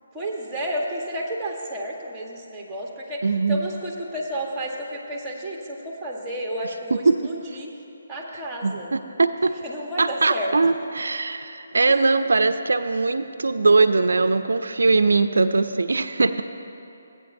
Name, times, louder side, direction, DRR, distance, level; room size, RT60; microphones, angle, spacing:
voice 1, 0.1-7.7 8.1-8.9 9.6-10.6 11.9-12.0, equal, 5° right, -1 dB, 1.1 m, -31 dB
voice 2, 3.2-3.6 7.1-7.2 8.6-9.5 10.0-16.4, right 3 dB, 75° right, 10 dB, 0.3 m, -21 dB
16.0 x 8.7 x 2.6 m, 2.9 s
figure-of-eight pair, 155°, 0 cm